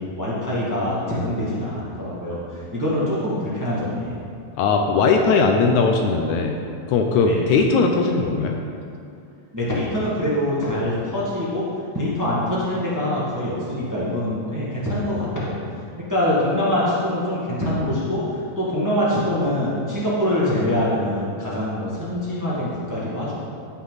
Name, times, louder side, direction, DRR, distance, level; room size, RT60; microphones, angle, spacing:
voice 1, 0.0-4.2 7.2-7.4 9.5-11.6 11.9-15.6 16.1-18.2 18.6-23.3, left 1 dB, 20° right, -8 dB, 0.5 m, -24 dB
voice 2, 4.6-6.6 6.9-8.6, left 4 dB, 85° left, 3 dB, 1.7 m, -19 dB
14.5 x 5.8 x 4.0 m, 2.5 s
omnidirectional pair, 4.0 m